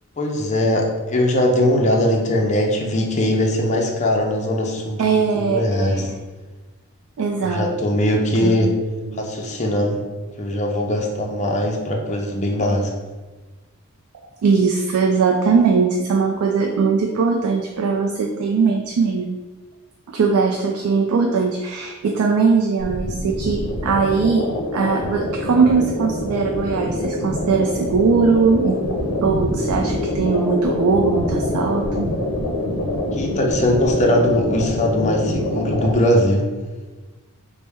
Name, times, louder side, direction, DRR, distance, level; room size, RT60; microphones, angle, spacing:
voice 1, 0.2-6.1 7.4-8.7 9.2-10.0 10.4-12.9 33.1-36.5, left 1 dB, 35° left, 1 dB, 0.5 m, -20 dB
voice 2, 5.0-6.2 7.2-7.7 8.4-8.6 9.1-9.5 14.4-19.4 20.1-28.8 29.2-32.1, right 5 dB, 90° right, 2 dB, 0.4 m, -20 dB
sound 1, 22.8-35.9, left 1 dB, 80° left, 0.6 m, -25 dB
4.2 x 2.1 x 3.4 m, 1.2 s
head